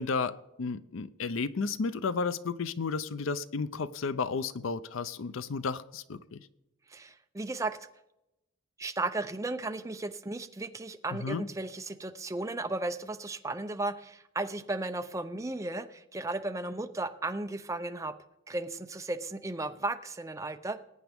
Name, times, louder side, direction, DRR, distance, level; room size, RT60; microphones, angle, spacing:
voice 1, 0.0-6.5 11.1-11.5, left 4 dB, 70° left, 15 dB, 0.5 m, -33 dB
voice 2, 6.9-7.8 8.8-18.1 18.5-20.8, right 2 dB, 15° right, 8 dB, 0.5 m, -35 dB
20.5 x 9.1 x 3.5 m, 0.91 s
head